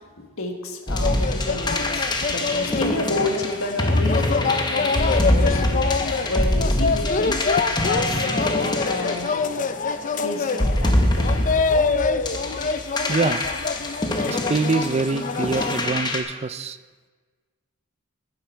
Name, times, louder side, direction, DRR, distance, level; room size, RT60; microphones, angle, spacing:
voice 1, 0.2-4.3 4.7-5.9 6.3-7.4 7.8-9.3 10.2-11.5 12.5-12.6, left 2 dB, 85° left, 4 dB, 1.5 m, -30 dB
sound 1, 0.9-9.9 10.5-16.2, left 1 dB, 20° left, 1.0 m, -24 dB
sound 2, 1.0-15.9, left 4 dB, 40° left, 0.5 m, -26 dB
voice 2, 13.1-13.4 14.3-16.8, right 4 dB, 30° right, 14 dB, 0.4 m, -24 dB
12.0 x 9.4 x 4.5 m, 1.4 s
head